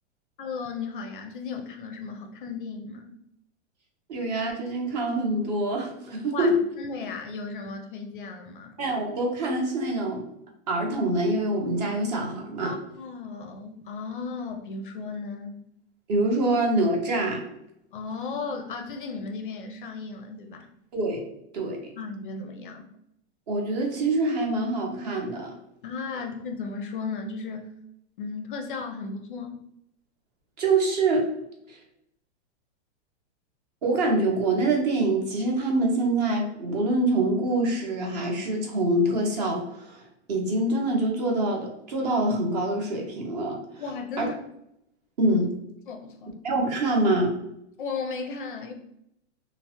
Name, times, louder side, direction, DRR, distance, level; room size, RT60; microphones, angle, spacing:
voice 1, 0.4-3.1 6.3-8.8 12.6-15.6 17.9-20.7 22.0-22.8 25.8-27.7 28.2-29.6 43.8-44.4 45.9-46.3 47.8-48.7, left 4 dB, 50° left, 5 dB, 0.4 m, -35 dB
voice 2, 4.1-6.5 8.8-10.2 10.7-12.7 16.1-17.5 20.9-21.2 21.5-21.9 23.5-25.5 30.6-31.3 31.7-31.8 33.8-43.8 44.2-44.3 45.2-45.5 46.4-47.3, right 2 dB, 35° right, 1 dB, 0.6 m, -25 dB
3.1 x 2.0 x 2.8 m, 0.78 s
supercardioid pair, 170°, 34 cm